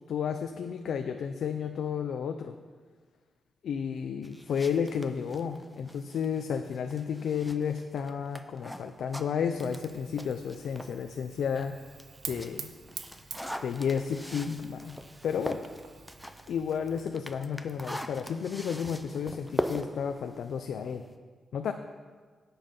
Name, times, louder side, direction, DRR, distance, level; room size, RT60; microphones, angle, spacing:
voice 1, 0.1-2.5 3.6-11.8 12.3-12.7 13.6-15.0 15.2-15.7 16.5-21.0 21.5-21.7, left 7 dB, 70° left, 6 dB, 0.6 m, -32 dB
sound 1, 4.2-11.0 11.4-21.2, equal, ahead, 0.5 m, -41 dB
Fire, 9.6-17.0, right 7 dB, 75° right, 0.8 m, -47 dB
16.0 x 7.1 x 5.5 m, 1.5 s
wide cardioid pair, 170°, 0 cm